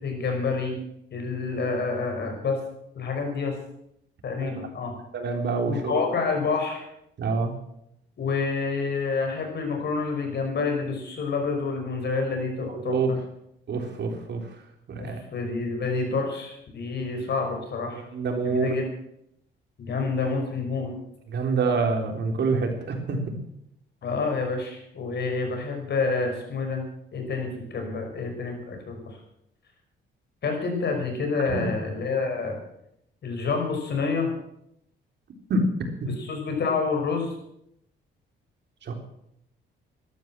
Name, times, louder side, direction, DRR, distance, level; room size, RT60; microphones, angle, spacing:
voice 1, 0.0-0.8 1.1-2.6 2.9-3.6 4.2-5.0 5.7-6.8 8.2-13.2 15.0-18.0 18.4-18.8 19.8-20.9 24.0-26.8 27.1-29.2 30.4-32.6 33.2-34.3 36.1-37.3, left 4 dB, 60° left, 3 dB, 5.6 m, -28 dB
voice 2, 5.1-6.0 7.2-7.5 12.7-13.1 13.7-14.4 14.9-15.2 18.1-18.7 21.3-23.2 31.5-31.7 35.5-35.7 36.0-36.1 38.8-38.9, right 4 dB, 60° right, 3 dB, 3.7 m, -26 dB
12.5 x 12.5 x 7.6 m, 0.78 s
cardioid pair, 90°, 20 cm